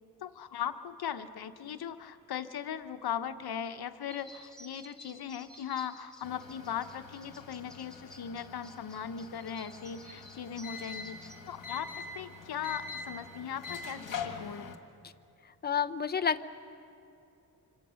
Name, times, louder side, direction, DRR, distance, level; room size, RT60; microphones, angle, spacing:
voice 1, 0.2-11.2 11.5-14.7, left 8 dB, 65° left, 9 dB, 1.0 m, -39 dB
sound 1, 4.1-11.3, equal, ahead, 2.1 m, -54 dB
sound 2, 6.2-14.8, left 4 dB, 50° left, 1.7 m, -44 dB
voice 2, 15.6-16.5, left 7 dB, 25° left, 9 dB, 0.6 m, -29 dB
26.0 x 25.5 x 6.4 m, 2.7 s
wide cardioid pair, 180°, 40 cm